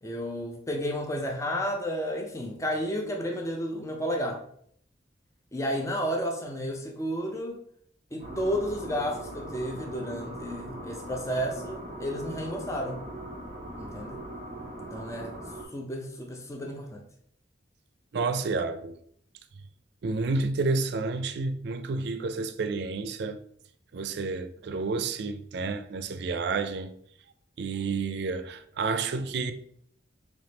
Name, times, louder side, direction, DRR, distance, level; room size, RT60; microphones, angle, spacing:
voice 1, 0.0-4.4 5.5-7.6 8.1-13.0 13.8-14.2 14.9-15.3 15.7-17.0, equal, 15° left, 0.5 m, -32 dB
sound 1, 8.2-15.6, right 1 dB, 35° right, 0.9 m, -40 dB
voice 2, 18.1-19.0 20.0-23.4 23.9-26.9 27.6-29.5, right 4 dB, 60° right, 0.4 m, -30 dB
3.5 x 3.1 x 3.8 m
head